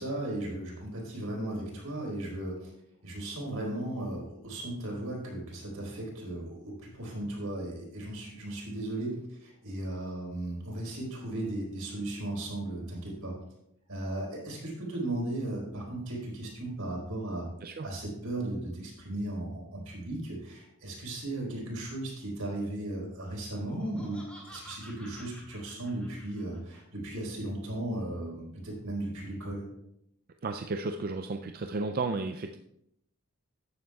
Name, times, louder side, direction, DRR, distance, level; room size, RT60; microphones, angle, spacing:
voice 1, 0.0-2.7 3.0-13.3 13.9-17.5 17.8-29.6, right 1 dB, 75° right, -2 dB, 4.2 m, -36 dB
Laughter, 23.5-26.8, equal, 5° left, 2.2 m, -51 dB
voice 2, 30.4-32.6, right 3 dB, 40° right, 6 dB, 0.4 m, -33 dB
13.5 x 9.4 x 2.4 m, 0.77 s
head